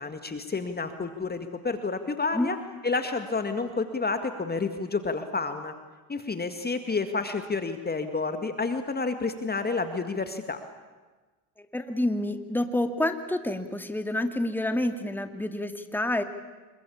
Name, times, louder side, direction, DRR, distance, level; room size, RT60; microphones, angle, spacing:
voice 1, 0.0-2.6 2.8-5.7 6.1-10.6, left 4 dB, 20° left, 8 dB, 2.0 m, -30 dB
voice 2, 11.6-16.2, left 1 dB, 5° left, 7 dB, 2.3 m, -28 dB
26.5 x 22.5 x 8.7 m, 1.3 s
supercardioid pair, 85°, 45 cm